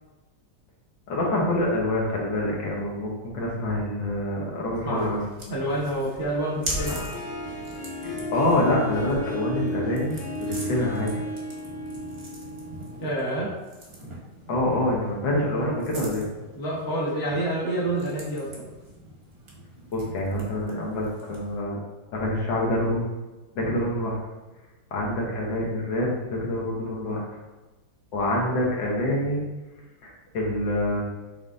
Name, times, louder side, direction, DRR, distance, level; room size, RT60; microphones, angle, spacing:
voice 1, 1.1-5.2 8.0-11.2 14.5-16.3 19.9-21.8 22.1-23.1 23.5-24.2 24.9-27.2 28.1-29.4 30.0-31.0, left 1 dB, 70° left, -3 dB, 1.6 m, -26 dB
voice 2, 4.8-5.2 5.5-7.0 13.0-13.5 16.6-18.5, right 1 dB, 20° left, -5 dB, 0.6 m, -28 dB
sound 1, 4.9-21.6, right 1 dB, 40° right, 1.0 m, -41 dB
Harp, 6.5-13.6, equal, 55° left, 1.2 m, -34 dB
5.4 x 3.6 x 2.5 m, 1.1 s
omnidirectional pair, 2.1 m